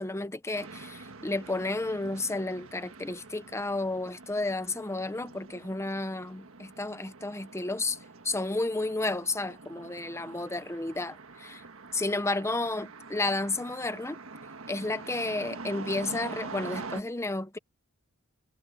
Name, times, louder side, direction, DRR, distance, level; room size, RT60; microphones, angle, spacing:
voice 1, 0.0-8.0 8.2-11.6 11.9-14.2 14.7-17.6, left 2 dB, 15° left, 0.9 m, -32 dB
sound 1, 0.5-17.0, right 3 dB, 65° right, 1.6 m, -45 dB
head